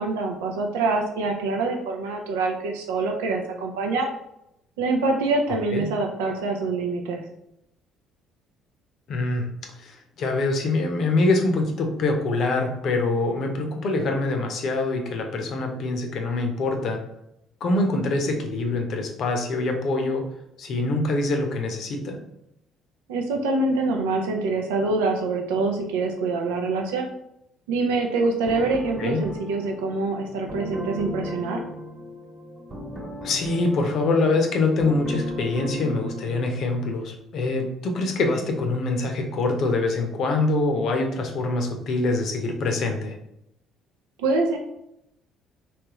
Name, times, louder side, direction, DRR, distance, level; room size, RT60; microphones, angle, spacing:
voice 1, 0.0-4.1 4.8-7.2 23.1-27.1 27.7-31.6 44.2-44.6, right 3 dB, 75° right, 2 dB, 0.5 m, -25 dB
voice 2, 5.5-5.8 9.1-9.5 9.8-17.0 17.6-20.3 20.6-22.2 29.0-29.2 33.2-43.2, left 2 dB, 55° left, 3 dB, 0.7 m, -24 dB
sound 1, 28.4-37.0, left 1 dB, 35° right, 1.2 m, -37 dB
3.3 x 3.1 x 2.9 m, 0.81 s
hypercardioid pair, 50°, 0 cm